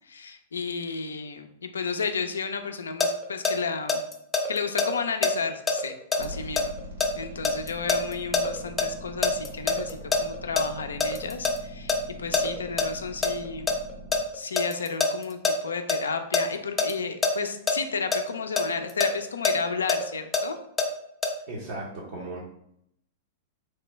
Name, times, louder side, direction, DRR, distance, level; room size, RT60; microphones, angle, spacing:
voice 1, 0.1-4.0 4.5-6.7 7.2-13.7 14.3-20.5, left 5 dB, 85° left, 7 dB, 0.3 m, -32 dB
sound 1, 3.0-8.9 9.2-11.6 11.9-12.0 12.3-12.9 13.2-16.4 16.8-16.9 17.2-17.3 17.7-17.8 18.1-20.9 21.2-21.3, left 4 dB, 15° left, 0.5 m, -24 dB
sound 2, 6.2-14.2, equal, 90° right, 1.4 m, -42 dB
voice 2, 21.5-22.4, right 2 dB, 65° right, -5 dB, 0.7 m, -36 dB
3.1 x 2.2 x 3.0 m, 0.73 s
hypercardioid pair, 105°, 0 cm